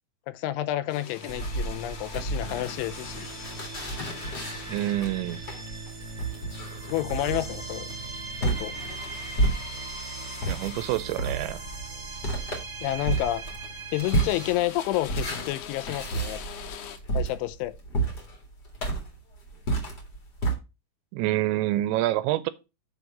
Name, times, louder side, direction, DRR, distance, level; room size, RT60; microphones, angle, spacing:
voice 1, 0.3-3.3 6.9-7.9 8.4-8.7 12.8-13.4 13.9-16.4 17.1-17.8, left 14 dB, 90° left, 3.1 m, -30 dB
sound 1, 0.9-5.2 7.5-8.1 8.5-11.2 12.2-12.4 12.9-13.7 14.0-17.0, left 9 dB, 70° left, 2.6 m, -44 dB
sound 2, 1.2-14.5, right 3 dB, 20° right, 2.5 m, -40 dB
sound 3, 1.3-10.0 10.4-20.5, right 2 dB, 35° left, 1.6 m, -31 dB
voice 2, 4.7-5.4 10.5-11.6 21.1-22.5, right 15 dB, 85° right, 2.7 m, -27 dB
7.0 x 4.7 x 6.4 m
omnidirectional pair, 5.4 m